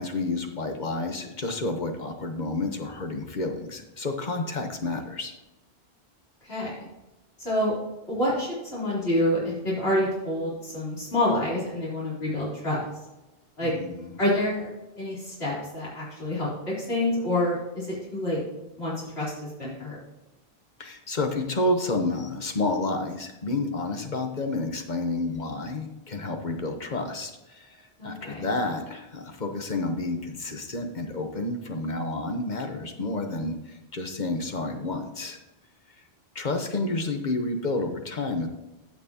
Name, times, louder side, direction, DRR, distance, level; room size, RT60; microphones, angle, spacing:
voice 1, 0.0-5.3 13.6-14.1 20.8-27.8 28.0-35.4 36.3-38.5, left 2 dB, 45° left, 5 dB, 1.2 m, -30 dB
voice 2, 8.1-12.8 13.6-13.7 14.2-14.7 15.0-16.5 16.8-18.4 18.8-19.3 19.6-20.0 28.0-28.4, left 1 dB, 85° left, -8 dB, 4.1 m, -27 dB
15.5 x 6.0 x 2.9 m, 1.0 s
omnidirectional pair, 1.0 m